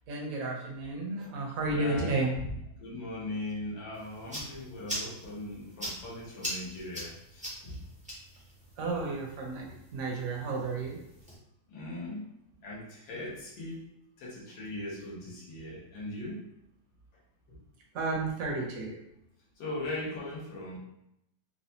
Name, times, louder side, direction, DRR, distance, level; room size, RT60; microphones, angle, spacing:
voice 1, 0.1-2.3 8.8-9.6 9.9-11.0 17.9-19.0, right 2 dB, 60° right, -1 dB, 1.1 m, -32 dB
voice 2, 1.7-2.2 2.8-7.8 11.7-12.3 12.6-13.9 14.2-16.5 17.5-17.6 19.6-20.8, left 1 dB, 80° left, -5 dB, 1.7 m, -39 dB
sound 1, 3.9-11.3, equal, 10° right, 0.4 m, -42 dB
4.1 x 2.3 x 2.7 m, 0.78 s
omnidirectional pair, 2.0 m